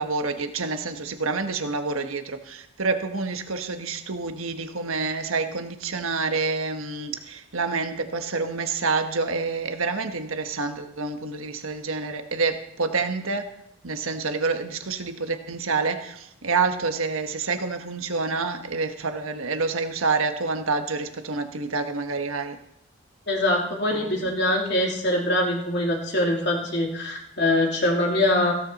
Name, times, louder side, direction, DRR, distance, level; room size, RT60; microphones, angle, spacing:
voice 1, 0.0-13.5 13.8-22.6 23.9-24.3, right 4 dB, 85° right, 7 dB, 1.3 m, -28 dB
voice 2, 23.3-28.5, left 1 dB, 55° left, -1 dB, 3.4 m, -23 dB
16.5 x 12.5 x 4.2 m, 0.80 s
head